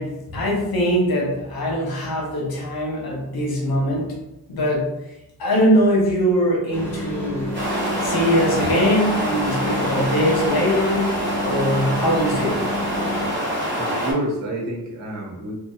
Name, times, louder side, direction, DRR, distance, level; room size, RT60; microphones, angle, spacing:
voice 1, 0.0-4.1 4.5-4.9 5.4-7.5 8.0-12.6, equal, 75° left, -2 dB, 0.9 m, -22 dB
sound 1, 6.7-13.3, equal, 5° left, 0.9 m, -30 dB
sound 2, 7.5-14.1, equal, 30° right, 1.1 m, -25 dB
voice 2, 13.7-15.5, right 1 dB, 50° right, -4 dB, 1.0 m, -28 dB
2.8 x 2.3 x 2.3 m, 0.91 s
cardioid pair, 85°, 37 cm